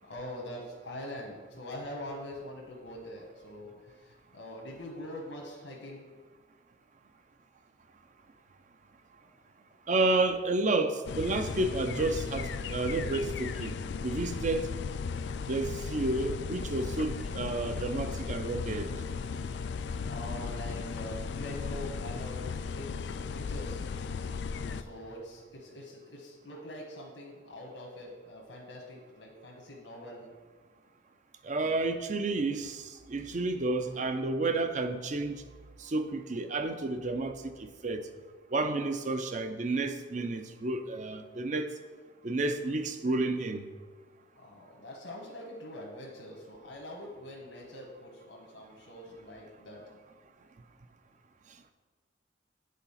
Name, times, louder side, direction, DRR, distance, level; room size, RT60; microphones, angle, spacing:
voice 1, 0.0-6.1 9.2-9.3 19.5-19.8 20.1-23.8 24.7-30.2 44.3-49.8, left 1 dB, 90° left, 1.3 m, -44 dB
voice 2, 9.9-13.8 14.0-14.7 15.5-18.9 31.4-35.3 35.8-38.1 38.5-41.7 42.2-43.6, right 2 dB, 40° right, 0.5 m, -31 dB
sound 1, 11.1-24.8, left 5 dB, 65° left, 0.3 m, -36 dB
8.4 x 3.9 x 5.7 m
head